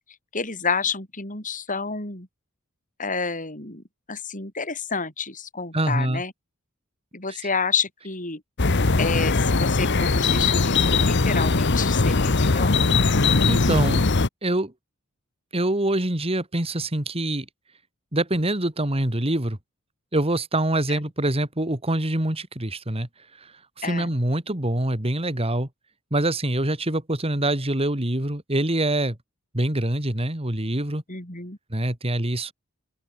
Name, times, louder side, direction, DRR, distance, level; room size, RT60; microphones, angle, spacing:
voice 1, 0.3-2.3 3.0-6.3 7.1-8.4 9.0-12.7 20.9-21.0 23.8-24.1 31.1-31.6, left 5 dB, 40° left, 7.1 m, -29 dB
voice 2, 5.7-6.2 13.2-14.0 14.4-14.7 15.5-17.5 18.1-19.6 20.1-23.1 23.8-25.7 26.1-29.2 29.5-31.0 31.7-32.5, right 1 dB, 25° right, 2.6 m, -25 dB
sound 1, 8.6-14.3, left 3 dB, 55° left, 1.1 m, -20 dB
open air
head